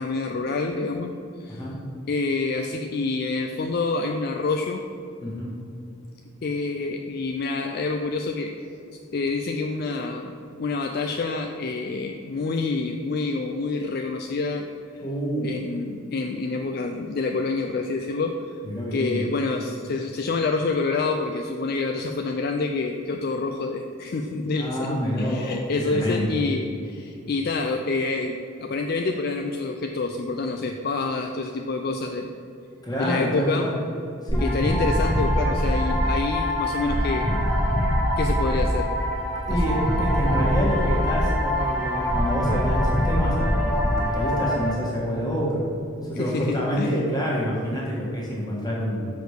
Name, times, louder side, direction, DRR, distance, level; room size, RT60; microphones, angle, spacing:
voice 1, 0.0-1.6 2.1-4.8 6.4-8.5 9.1-14.6 15.4-18.4 18.9-32.3 33.0-33.7 34.4-37.3 38.2-38.9 39.5-39.8 46.1-46.9, left 3 dB, 45° left, 4 dB, 0.4 m, -27 dB
voice 2, 1.5-1.8 5.2-5.5 15.0-15.6 18.6-19.2 24.5-26.4 32.8-33.8 34.2-34.5 39.5-45.7 46.0-49.1, equal, 20° left, -4 dB, 1.6 m, -27 dB
sound 1, 34.3-44.7, equal, ahead, 1.1 m, -23 dB
6.3 x 5.1 x 6.5 m, 2.6 s
head